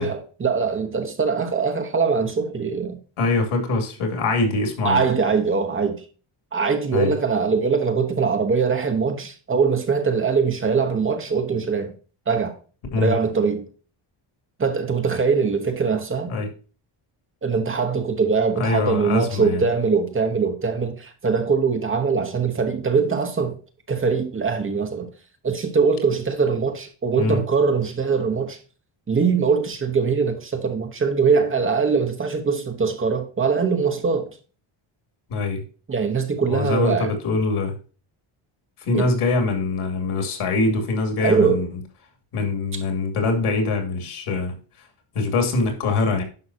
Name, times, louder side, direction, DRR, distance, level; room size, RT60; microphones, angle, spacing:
voice 1, 0.0-3.0 4.8-6.0 6.5-11.9 12.3-12.6 12.9-13.7 14.6-16.3 17.4-23.5 23.9-25.1 25.4-28.6 29.1-34.4 35.9-37.1 38.9-39.1 41.2-41.7 42.7-42.8, right 5 dB, 25° right, 1.1 m, -22 dB
voice 2, 3.2-5.0 6.9-7.1 12.9-13.1 16.3-16.5 18.5-19.6 27.2-27.4 35.3-35.6 36.5-37.7 38.8-41.7 42.3-44.9 45.1-46.2, left 3 dB, 90° left, 2.7 m, -23 dB
11.0 x 5.6 x 2.7 m
wide cardioid pair, 180°, 49 cm